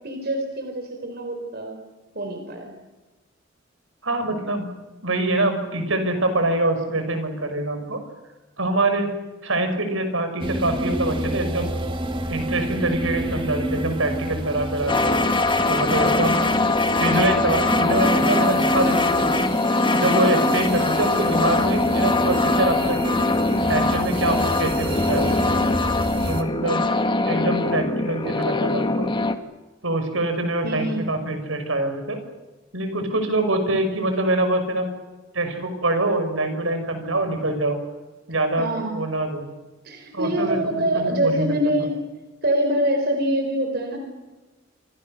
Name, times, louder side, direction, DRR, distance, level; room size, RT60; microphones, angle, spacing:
voice 1, 0.0-1.7 2.1-2.7 30.6-31.0 38.6-39.0 39.8-42.0 42.4-44.0, right 1 dB, 55° right, 4 dB, 4.4 m, -24 dB
voice 2, 4.0-4.7 5.0-8.0 8.6-9.1 9.4-11.7 12.3-15.2 15.7-16.5 17.0-19.5 19.9-23.1 23.7-25.5 26.3-26.9 27.2-29.2 29.8-32.2 32.7-34.9 35.3-37.8 38.3-39.5 40.1-41.6, right 2 dB, 80° right, 7 dB, 6.0 m, -24 dB
sound 1, 10.4-26.4, right 1 dB, 25° right, 2.3 m, -28 dB
sound 2, 14.9-29.3, left 3 dB, 25° left, 1.6 m, -22 dB
28.5 x 26.0 x 6.7 m, 1.2 s
head